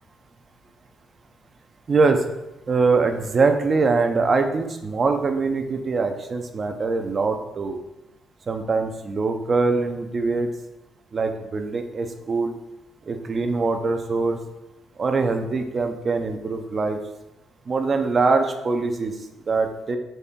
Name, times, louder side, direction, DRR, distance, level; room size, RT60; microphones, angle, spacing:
voice 1, 1.9-2.2 2.7-7.8 8.5-10.5 11.1-12.5 13.1-14.4 15.0-17.0 17.7-19.1 19.5-20.0, right 4 dB, 40° right, 6 dB, 0.5 m, -23 dB
4.1 x 3.3 x 3.7 m, 0.94 s
cardioid pair, 90°, 0 cm